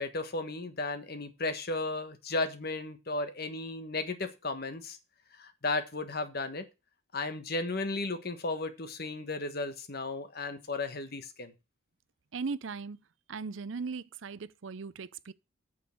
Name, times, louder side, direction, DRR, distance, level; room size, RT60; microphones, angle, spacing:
voice 1, 0.0-5.0 5.4-6.7 7.1-11.5, left 3 dB, 50° left, 1.4 m, -34 dB
voice 2, 12.3-13.0 13.3-15.3, right 4 dB, 65° right, 0.5 m, -38 dB
8.9 x 6.9 x 6.3 m
head